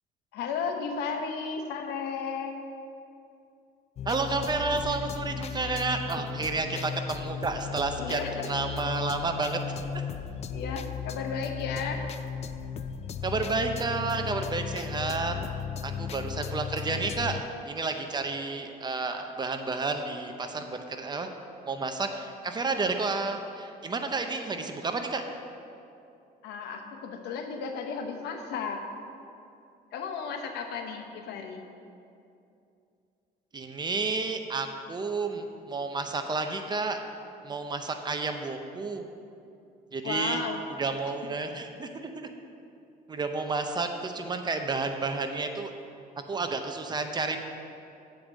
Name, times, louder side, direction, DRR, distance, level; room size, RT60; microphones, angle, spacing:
voice 1, 0.3-2.5 8.0-8.5 10.5-12.1 26.4-28.8 29.9-31.6 40.0-40.6, left 5 dB, 80° left, 4 dB, 0.9 m, -34 dB
sound 1, 4.0-17.4, left 7 dB, 40° left, 0.4 m, -36 dB
voice 2, 4.0-9.8 13.2-15.3 15.8-21.3 21.6-25.2 33.5-37.0 37.4-39.0 39.9-40.4 40.8-42.3 43.1-45.7 46.3-47.4, right 3 dB, 25° right, 6 dB, 0.7 m, -31 dB
7.8 x 5.1 x 7.4 m, 2.6 s
cardioid pair, 110°, 17 cm